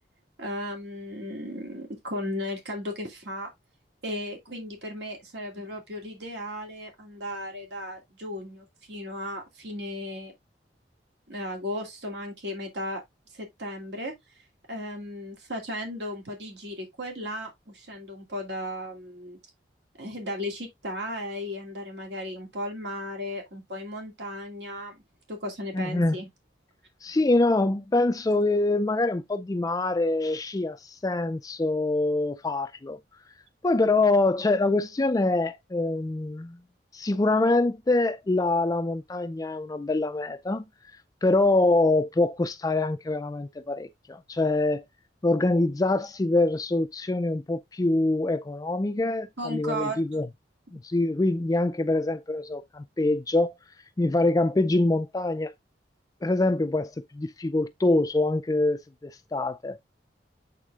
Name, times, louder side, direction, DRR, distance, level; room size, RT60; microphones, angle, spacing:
voice 1, 0.4-3.5 4.0-10.3 11.3-13.0 13.3-14.1 14.7-19.4 20.0-25.0 25.3-26.3 49.4-50.2, equal, 70° right, 2.4 m, -35 dB
voice 2, 25.7-26.2 27.0-33.0 33.6-36.6 36.9-40.6 41.2-44.8 45.2-50.3 50.7-53.5 54.0-55.5 56.2-59.8, left 2 dB, 20° left, 0.4 m, -25 dB
8.2 x 3.7 x 3.5 m
head